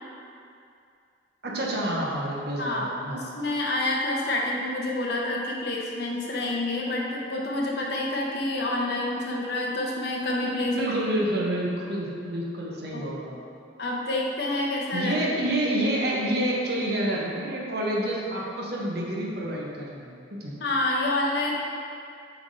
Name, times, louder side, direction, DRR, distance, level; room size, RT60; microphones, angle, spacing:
voice 1, 1.4-3.2 10.6-13.4 14.9-20.5, right 1 dB, 60° right, -3 dB, 1.0 m, -28 dB
voice 2, 2.6-10.7 12.9-13.0 13.8-15.1 20.6-21.5, left 2 dB, 65° left, -2 dB, 0.9 m, -28 dB
7.3 x 3.5 x 4.0 m, 2.4 s
head